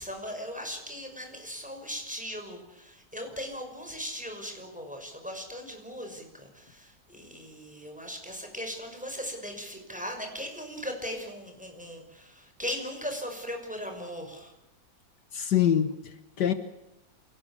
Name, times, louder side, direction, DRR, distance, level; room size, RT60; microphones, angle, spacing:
voice 1, 0.0-14.5, equal, 5° right, 4 dB, 5.9 m, -38 dB
voice 2, 15.3-16.5, left 9 dB, 70° left, 11 dB, 1.8 m, -25 dB
27.0 x 19.0 x 8.6 m, 0.92 s
omnidirectional pair, 1.9 m